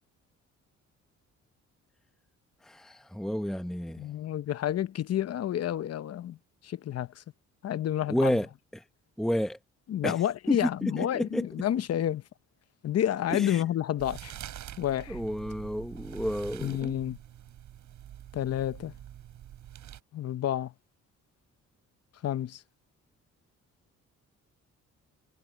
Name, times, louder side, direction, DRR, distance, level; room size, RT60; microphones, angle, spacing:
voice 1, 2.6-4.0 8.1-8.5 8.7-8.8 9.2-9.6 10.0-10.2 10.5-11.5 13.3-13.6 15.1-16.9, equal, ahead, 0.9 m, -30 dB
voice 2, 4.0-6.4 6.6-7.1 7.6-8.4 9.9-12.2 12.8-14.3 14.8-15.2 16.6-17.2 18.3-18.9 20.1-20.7 22.2-22.6, left 11 dB, 55° left, 0.9 m, -29 dB
sound 1, 14.0-20.0, right 11 dB, 75° right, 7.7 m, -45 dB
cardioid pair, 90°, 30 cm